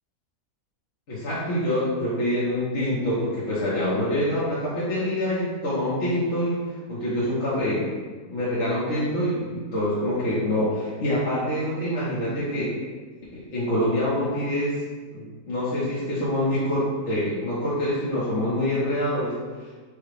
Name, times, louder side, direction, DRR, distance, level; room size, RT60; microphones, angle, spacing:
voice 1, 1.1-6.6 6.9-7.9 8.3-12.8 13.3-14.8 15.1-19.7, left 1 dB, 50° left, -10 dB, 1.2 m, -26 dB
4.8 x 2.3 x 4.7 m, 1.4 s
omnidirectional pair, 1.6 m